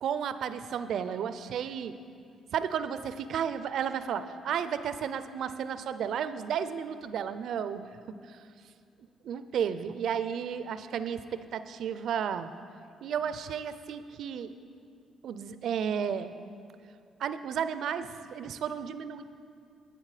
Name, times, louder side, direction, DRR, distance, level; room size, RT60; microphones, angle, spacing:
voice 1, 0.0-2.0 2.5-7.8 9.2-12.5 13.0-14.5 15.2-16.3 17.2-19.2, right 8 dB, 70° right, 12 dB, 0.5 m, -33 dB
10.5 x 8.3 x 5.0 m, 2.4 s
cardioid pair, 90°, 0 cm